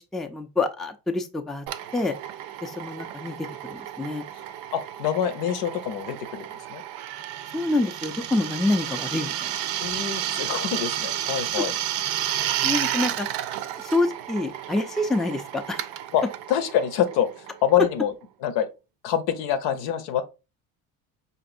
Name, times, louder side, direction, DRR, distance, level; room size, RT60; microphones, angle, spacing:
voice 1, 0.0-1.7 1.9-2.1 2.6-3.4 3.6-4.2 7.5-9.6 12.2-13.3 13.8-15.9, left 2 dB, ahead, 0.3 m, -27 dB
Drill, 1.7-18.0, right 11 dB, 70° right, 0.5 m, -32 dB
voice 2, 4.7-6.8 9.8-11.7 16.1-16.2 16.5-18.1 18.4-18.7 19.0-20.2, left 9 dB, 80° left, 0.7 m, -25 dB
5.1 x 2.6 x 2.5 m
supercardioid pair, 80°, 41 cm